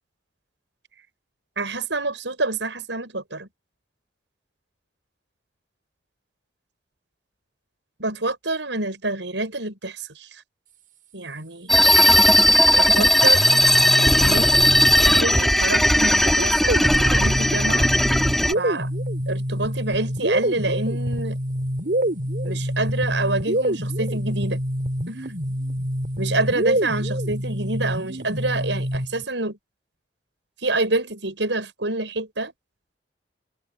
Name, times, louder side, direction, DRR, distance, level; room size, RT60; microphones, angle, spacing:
voice 1, 1.6-3.5 8.0-10.4 11.1-11.7 12.7-13.7 14.2-14.8 15.2-17.9 18.5-18.9 19.3-21.4 22.4-24.6 25.1-25.3 26.2-29.6 30.6-32.5, right 2 dB, 90° right, 6.5 m, -27 dB
sound 1, 11.7-18.5, equal, ahead, 3.9 m, -17 dB
sound 2, 13.2-15.4 16.3-29.2, equal, 50° right, 7.5 m, -26 dB
head